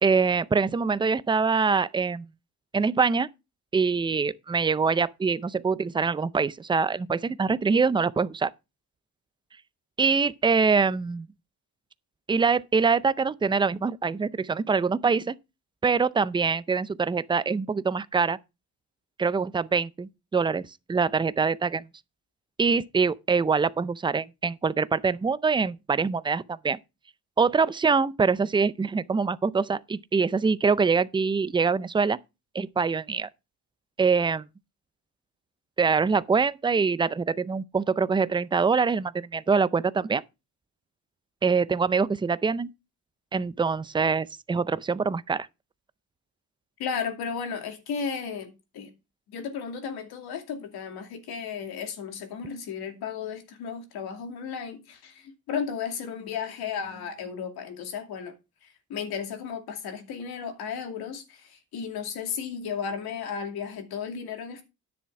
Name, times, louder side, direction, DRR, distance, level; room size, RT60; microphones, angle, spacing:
voice 1, 0.0-2.3 2.7-3.3 3.7-8.5 10.0-11.3 12.3-15.4 15.8-18.4 19.2-21.8 22.6-26.8 27.4-32.2 32.5-33.3 34.0-34.4 35.8-40.2 41.4-42.7 43.3-45.5, right 5 dB, 15° right, 0.4 m, -24 dB
voice 2, 46.8-48.9 49.3-58.3 58.6-64.6, left 6 dB, 80° left, 2.6 m, -34 dB
10.0 x 6.8 x 4.8 m
cardioid pair, 95°, 37 cm